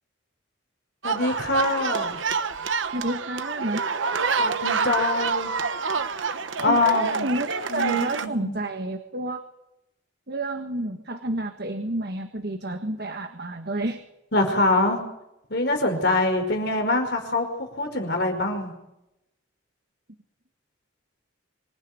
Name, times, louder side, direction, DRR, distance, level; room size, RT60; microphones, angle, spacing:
voice 1, 1.0-2.2 4.4-5.5 6.3-7.3 7.7-8.6 14.3-15.0 15.5-18.7, left 2 dB, 55° left, 4 dB, 5.1 m, -24 dB
sound 1, 1.0-8.3, right 5 dB, 75° right, 1.1 m, -27 dB
voice 2, 2.9-3.8 6.6-9.4 10.3-14.0, right 1 dB, 55° right, 6 dB, 1.5 m, -29 dB
25.5 x 16.5 x 9.1 m, 0.90 s
head